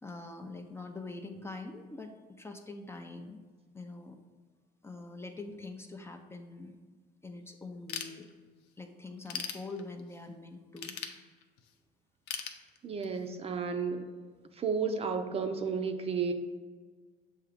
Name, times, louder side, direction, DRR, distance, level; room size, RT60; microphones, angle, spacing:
voice 1, 0.0-3.4 3.7-4.2 4.8-6.7 7.2-8.3 8.8-11.0, left 3 dB, 15° left, 5 dB, 0.5 m, -44 dB
Ratchet pawl / Tools, 7.9-8.7 9.1-10.2 10.8-11.7 12.3-13.3, left 7 dB, 85° left, 0.6 m, -40 dB
voice 2, 12.8-14.1 14.6-16.3, right 5 dB, 35° right, 6 dB, 0.6 m, -32 dB
7.3 x 2.8 x 4.9 m, 1.5 s
cardioid pair, 110°, 17 cm